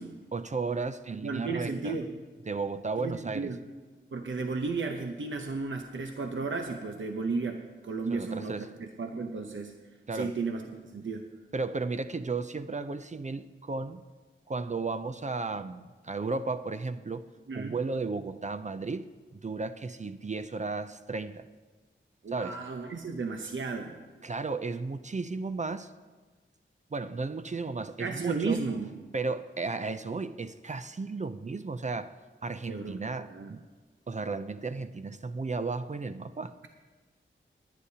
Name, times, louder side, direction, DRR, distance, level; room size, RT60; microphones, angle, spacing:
voice 1, 0.3-2.0 2.5-3.5 8.1-8.7 10.1-10.3 11.5-14.0 14.5-17.2 17.5-21.4 22.3-22.6 24.2-25.9 26.9-28.6 29.1-32.1 32.4-33.6 34.1-36.5, right 3 dB, 35° right, 10 dB, 0.5 m, -34 dB
voice 2, 1.2-2.1 3.0-3.6 4.1-9.7 10.1-10.6 10.9-11.3 17.5-17.8 22.2-23.9 28.0-28.9 32.7-33.5, right 4 dB, 75° right, 4 dB, 0.8 m, -34 dB
20.0 x 9.8 x 2.8 m, 1.3 s
wide cardioid pair, 80°, 20 cm